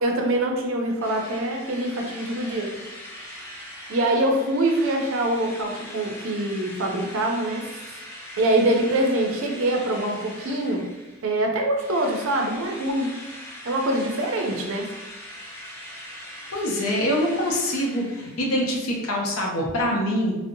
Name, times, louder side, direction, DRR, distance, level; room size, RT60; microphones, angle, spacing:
voice 1, 0.0-2.8 3.9-7.7 8.4-10.9 11.2-13.1 13.6-14.9, right 1 dB, 70° right, 2 dB, 0.4 m, -24 dB
Drill, 1.0-11.4 11.8-18.7, left 1 dB, 10° left, 0.3 m, -41 dB
voice 2, 16.5-20.4, equal, 80° left, 0 dB, 0.6 m, -24 dB
2.6 x 2.0 x 2.6 m, 1.1 s
head